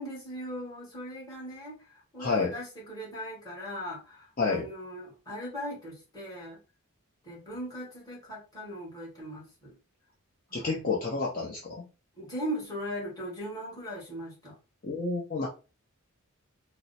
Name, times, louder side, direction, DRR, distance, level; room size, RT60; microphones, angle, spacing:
voice 1, 0.0-6.6 7.2-9.7 10.5-10.7 12.2-14.6, equal, 15° left, -5 dB, 1.5 m, -39 dB
voice 2, 2.2-2.6 4.4-4.7 10.5-11.9 14.8-15.5, left 4 dB, 40° left, -4 dB, 0.6 m, -29 dB
2.9 x 2.0 x 4.0 m, 0.32 s
head